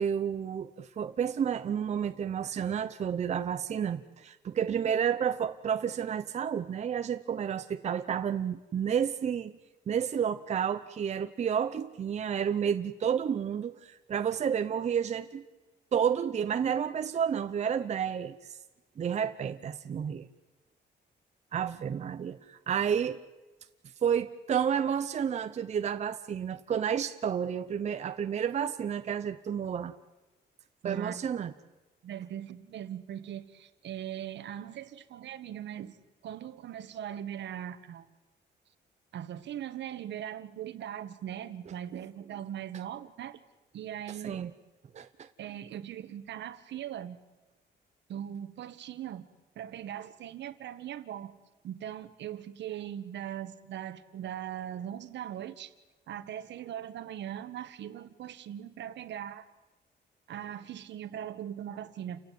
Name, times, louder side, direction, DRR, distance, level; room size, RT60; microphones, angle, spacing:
voice 1, 0.0-9.5 9.9-15.4 15.9-18.6 19.0-20.3 21.5-23.2 24.0-29.9 30.8-31.5 44.2-44.5 44.9-45.3, right 8 dB, 40° right, 9 dB, 0.8 m, -30 dB
voice 2, 30.8-31.2 32.0-36.0 36.2-38.1 39.1-43.4 43.7-44.5 45.4-47.2 48.1-49.2 49.5-51.3 51.6-55.7 56.1-59.5 60.3-62.2, right 10 dB, 75° right, 11 dB, 1.6 m, -40 dB
29.0 x 16.5 x 9.5 m, 1.1 s
cardioid pair, 155°, 19 cm